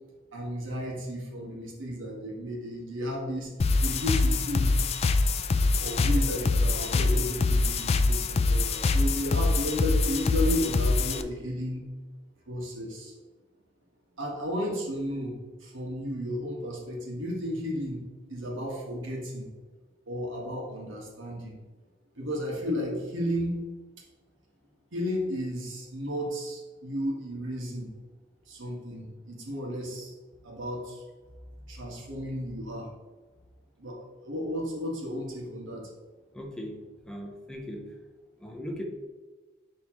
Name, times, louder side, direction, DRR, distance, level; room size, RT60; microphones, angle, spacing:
voice 1, 0.3-3.5 3.8-4.8 5.8-11.9 12.5-13.1 14.2-18.0 18.3-19.5 20.1-21.5 22.2-23.6 24.9-27.9 28.5-30.1 30.4-31.0 31.7-32.9 33.8-35.9, equal, 85° right, -2 dB, 1.7 m, -33 dB
sound 1, 3.6-11.2, left 3 dB, 35° left, 0.3 m, -24 dB
voice 2, 36.3-37.9 38.4-38.8, equal, 5° left, 0 dB, 0.8 m, -39 dB
10.0 x 3.6 x 3.1 m, 1.3 s
head